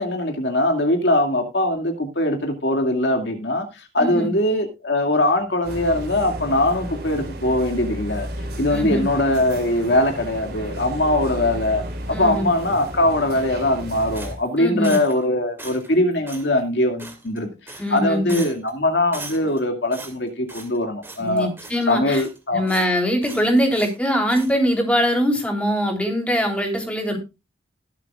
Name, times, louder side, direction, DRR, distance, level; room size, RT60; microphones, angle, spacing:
voice 1, 0.0-8.3 8.6-21.5 21.9-22.7 23.2-23.5, left 1 dB, 70° left, 4 dB, 2.3 m, -21 dB
voice 2, 4.0-4.3 8.7-9.1 12.1-12.5 14.6-15.0 17.8-18.4 21.2-22.2 22.5-27.2, equal, 5° left, 2 dB, 3.3 m, -22 dB
sound 1, 5.6-14.3, equal, 60° right, 4.4 m, -33 dB
sound 2, 14.1-15.3 15.6-15.9 16.3-16.5 17.0-17.4 17.7-18.0 18.3-18.7 19.1-19.6 19.9-20.8 21.0-21.3 21.6-22.4 22.7-22.9 23.2-24.0 24.3-24.5, right 3 dB, 15° right, 2.4 m, -39 dB
20.5 x 8.3 x 2.4 m, 0.26 s
head